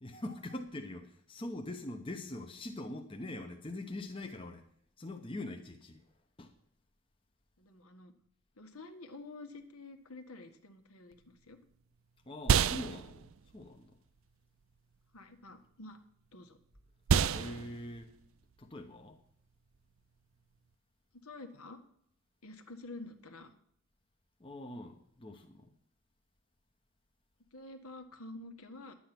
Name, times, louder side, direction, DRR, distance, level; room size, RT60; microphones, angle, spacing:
voice 1, 0.0-4.6 5.0-6.0 6.4-6.5 12.3-13.9 17.2-18.2 18.6-19.2 24.4-25.7, left 1 dB, 25° left, 0.8 m, -43 dB
voice 2, 7.6-8.1 8.6-11.6 15.1-16.0 16.3-16.6 21.1-21.8 22.4-23.5 27.5-28.9, left 2 dB, 75° left, 1.5 m, -49 dB
sound 1, 11.1-20.7, right 7 dB, 65° right, 0.4 m, -34 dB
10.5 x 8.6 x 5.9 m
head